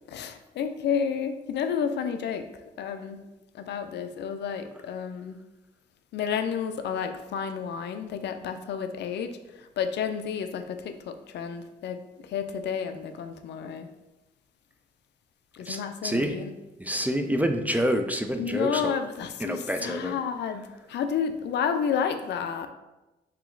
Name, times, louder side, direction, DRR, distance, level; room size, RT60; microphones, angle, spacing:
voice 1, 0.1-2.5 2.8-3.2 3.5-5.4 6.1-9.3 9.6-13.9 15.5-16.5 18.4-22.7, left 7 dB, 65° left, 8 dB, 0.4 m, -31 dB
voice 2, 15.6-16.4 16.8-18.9 19.4-20.2, equal, 10° right, 6 dB, 0.4 m, -27 dB
3.2 x 2.9 x 3.7 m, 1.0 s
supercardioid pair, 60°, 19 cm